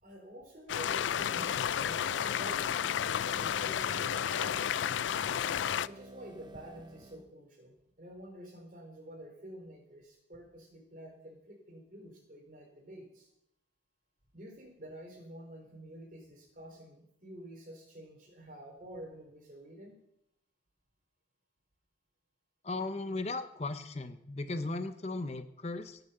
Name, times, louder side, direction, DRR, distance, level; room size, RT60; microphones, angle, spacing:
voice 1, 0.0-5.1 5.9-13.3 14.3-19.9, equal, 45° right, 2 dB, 3.7 m, -49 dB
sound 1, 0.7-5.9, left 9 dB, 85° left, 0.4 m, -32 dB
sound 2, 1.1-7.3, right 2 dB, 25° right, 0.8 m, -51 dB
voice 2, 22.6-26.0, left 2 dB, 35° left, 10 dB, 0.7 m, -37 dB
18.0 x 6.9 x 6.7 m, 0.76 s
head